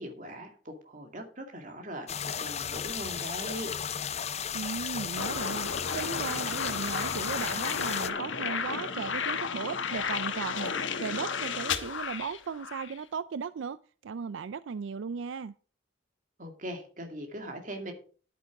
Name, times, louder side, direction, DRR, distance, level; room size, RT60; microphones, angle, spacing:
voice 1, 0.0-3.7 16.4-17.9, equal, 40° right, 2.4 m, -40 dB
sound 1, 2.1-8.1, left 8 dB, 35° left, 0.6 m, -34 dB
voice 2, 4.5-10.7 11.0-15.6, right 6 dB, 80° right, 0.4 m, -36 dB
sound 2, 5.2-13.0, left 5 dB, 90° left, 1.2 m, -33 dB
10.5 x 9.2 x 4.8 m
head